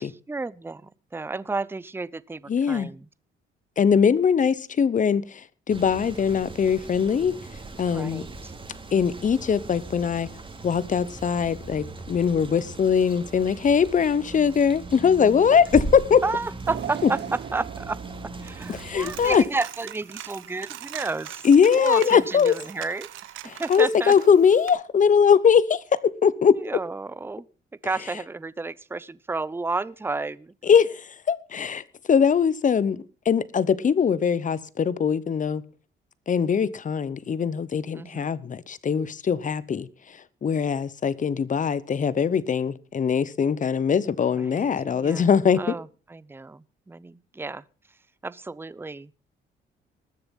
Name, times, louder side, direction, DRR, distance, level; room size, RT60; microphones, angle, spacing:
voice 1, 0.0-3.0 7.9-8.5 16.2-18.0 18.4-21.4 21.7-23.1 23.6-24.1 26.5-27.5 27.8-30.5 37.9-38.4 44.5-45.3 45.6-47.6 48.2-49.1, right 3 dB, 10° right, 0.6 m, -32 dB
voice 2, 2.5-2.9 3.8-7.4 7.8-8.2 8.9-10.3 10.6-16.2 17.0-17.1 18.7-19.4 21.4-22.6 23.5-26.6 30.6-35.6 36.3-45.8, left 7 dB, 40° left, 1.0 m, -21 dB
sound 1, 5.7-19.4, right 3 dB, 25° right, 2.5 m, -39 dB
sound 2, 16.7-19.8 20.2-20.4 21.4-21.5, right 10 dB, 60° right, 0.9 m, -38 dB
Coin (dropping), 18.5-24.7, right 13 dB, 85° right, 1.1 m, -41 dB
20.5 x 6.9 x 5.5 m
cardioid pair, 90°, 20 cm